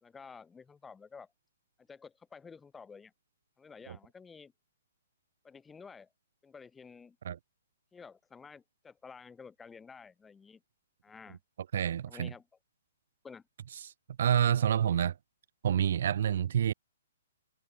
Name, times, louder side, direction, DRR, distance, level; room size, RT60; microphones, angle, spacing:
voice 1, 0.0-1.3 1.8-3.1 3.6-4.5 5.4-6.1 6.4-7.2 7.9-10.6 11.0-11.4 12.1-12.5 13.2-13.4, left 5 dB, 10° left, 3.9 m, -51 dB
voice 2, 11.7-12.3 13.8-13.9 14.2-15.1 15.6-16.7, right 9 dB, 60° right, 0.7 m, -28 dB
hypercardioid pair, 135°, 0 cm